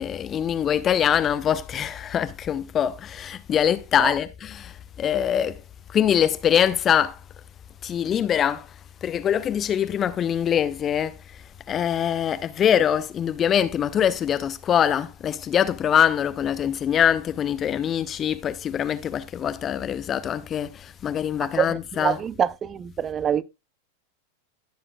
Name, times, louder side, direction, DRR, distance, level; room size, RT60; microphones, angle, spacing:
voice 1, 0.0-5.6 5.9-7.2 7.8-8.7 9.0-11.2 11.7-22.2, left 9 dB, 25° left, 0.5 m, -23 dB
voice 2, 21.6-23.4, right 8 dB, 25° right, 0.4 m, -25 dB
16.5 x 6.9 x 2.3 m
figure-of-eight pair, 90°, 0 cm